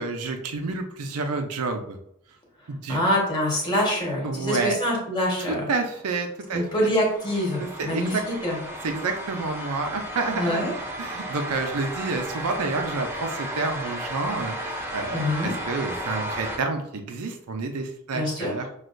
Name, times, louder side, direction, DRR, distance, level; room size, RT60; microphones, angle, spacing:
voice 1, 0.0-2.0 2.7-3.0 4.2-4.8 5.5-6.9 7.6-8.2 8.8-10.6 11.0-18.7, right 3 dB, 85° right, 5 dB, 0.5 m, -29 dB
voice 2, 2.9-5.7 6.5-8.6 10.3-10.7 15.1-15.5 18.1-18.5, left 1 dB, 20° left, -3 dB, 1.2 m, -25 dB
sound 1, 6.5-16.6, equal, 10° right, 0.5 m, -34 dB
6.0 x 2.3 x 2.5 m, 0.76 s
head